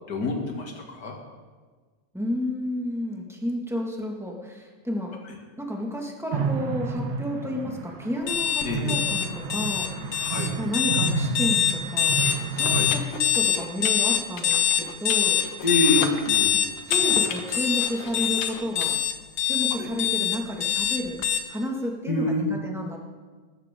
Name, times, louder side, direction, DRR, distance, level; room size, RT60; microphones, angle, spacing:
voice 1, 0.1-1.2 8.6-9.0 10.2-10.5 12.7-12.9 15.6-16.6 19.8-19.9 22.1-22.5, left 1 dB, 30° left, 1 dB, 2.3 m, -26 dB
voice 2, 2.1-5.2 5.6-9.9 10.6-12.2 12.5-15.4 16.9-19.0 19.4-21.2 21.5-23.0, equal, ahead, -1 dB, 0.6 m, -31 dB
sound 1, 6.3-13.1, right 4 dB, 60° right, 2.0 m, -30 dB
sound 2, 8.3-21.4, left 9 dB, 75° left, 1.1 m, -24 dB
sound 3, 12.1-18.9, left 5 dB, 60° left, 1.8 m, -38 dB
19.0 x 15.0 x 3.8 m, 1.4 s
omnidirectional pair, 3.7 m